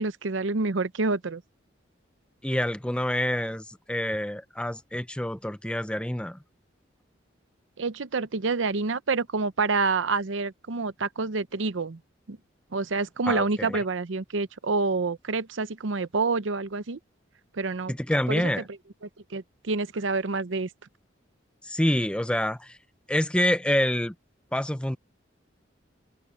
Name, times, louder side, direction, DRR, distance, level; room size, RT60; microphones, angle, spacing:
voice 1, 0.0-1.4 7.8-12.0 12.3-12.4 12.7-17.0 17.5-17.9 18.3-18.5 19.3-20.7, right 3 dB, 80° right, 0.7 m, -27 dB
voice 2, 2.4-6.4 13.3-13.8 17.9-18.7 21.6-22.8 23.1-24.1 24.5-25.0, left 1 dB, 5° left, 0.6 m, -27 dB
head